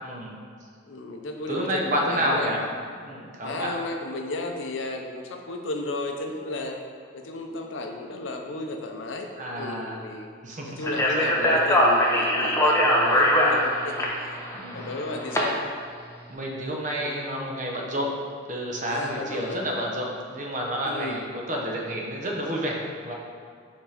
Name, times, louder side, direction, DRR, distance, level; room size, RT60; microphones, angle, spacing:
voice 1, 0.0-0.4 1.5-2.6 3.0-3.7 9.4-10.0 10.4-10.8 11.1-11.6 12.8-13.2 14.5-14.9 16.3-18.1 18.5-23.1, equal, 40° right, -1 dB, 0.8 m, -30 dB
voice 2, 0.9-2.6 3.4-6.8 7.1-9.3 9.6-10.3 10.6-14.4 14.7-15.6 17.0-17.2 18.9-19.6 20.8-21.2, left 2 dB, 75° left, 3 dB, 0.6 m, -34 dB
Speech, 10.8-15.4, left 1 dB, 15° left, 0.6 m, -21 dB
5.3 x 3.6 x 5.0 m, 2.1 s
head